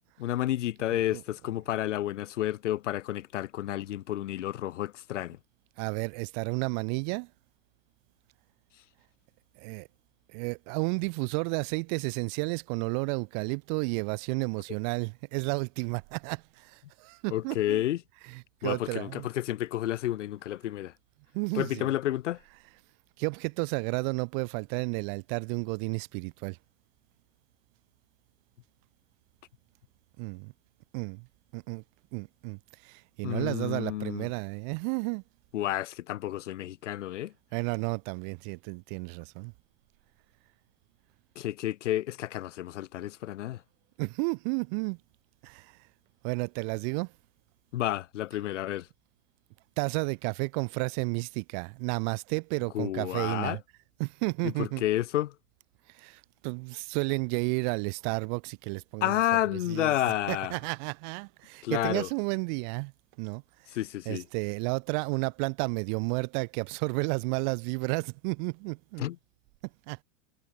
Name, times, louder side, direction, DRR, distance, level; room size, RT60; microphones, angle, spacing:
voice 1, 0.2-5.4 17.3-18.0 18.6-20.9 21.5-22.4 33.2-34.3 35.5-37.3 41.4-43.6 47.7-48.9 52.7-53.6 54.4-55.3 59.0-60.5 61.6-62.1 63.7-64.2 69.0-69.2, left 13 dB, 75° left, 4.3 m, -30 dB
voice 2, 5.8-7.3 9.6-9.9 10.3-17.8 18.3-19.3 21.3-21.9 23.2-26.6 30.2-30.5 30.9-31.3 31.5-31.8 32.1-35.2 37.5-39.5 44.0-45.0 45.4-45.7 46.2-47.1 49.8-53.6 54.0-54.8 56.0-59.2 59.5-59.9 60.3-62.9 63.2-63.4 64.1-69.0 69.9-70.0, right 38 dB, 35° right, 2.3 m, -32 dB
supercardioid pair, 170°, 37 cm